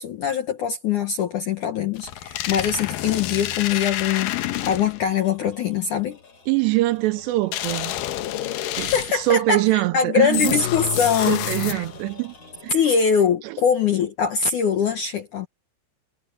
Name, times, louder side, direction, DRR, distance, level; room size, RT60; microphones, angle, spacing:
voice 1, 0.0-6.2 8.8-11.8 12.7-15.5, left 7 dB, 70° left, 1.9 m, -23 dB
sound 1, 2.0-5.1 7.5-9.3 10.3-12.1, left 13 dB, 90° left, 1.9 m, -28 dB
sound 2, 3.9-9.2 10.2-13.3, left 4 dB, 35° left, 5.5 m, -48 dB
voice 2, 6.5-7.9 8.8-10.6 11.3-12.3 12.6-12.8 13.4-13.6, right 18 dB, 80° right, 2.6 m, -23 dB
omnidirectional pair, 5.3 m